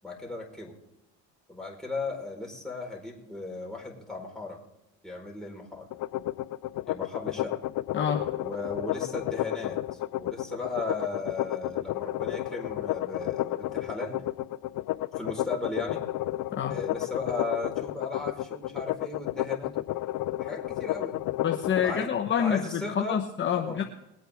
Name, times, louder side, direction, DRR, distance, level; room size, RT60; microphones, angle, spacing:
voice 1, 0.0-0.7 1.5-4.6 5.0-5.9 6.9-7.5 8.4-14.2 15.2-16.0 16.7-19.8 20.4-21.2 21.8-22.1 22.4-23.2 23.5-23.8, left 3 dB, ahead, -1 dB, 4.7 m, -36 dB
sound 1, 5.9-21.9, left 16 dB, 55° left, 0.6 m, -31 dB
voice 2, 7.9-8.3 16.5-16.8 21.4-23.8, left 8 dB, 30° left, 2 dB, 1.2 m, -27 dB
21.5 x 9.2 x 3.6 m, 0.91 s
supercardioid pair, 85°, 38 cm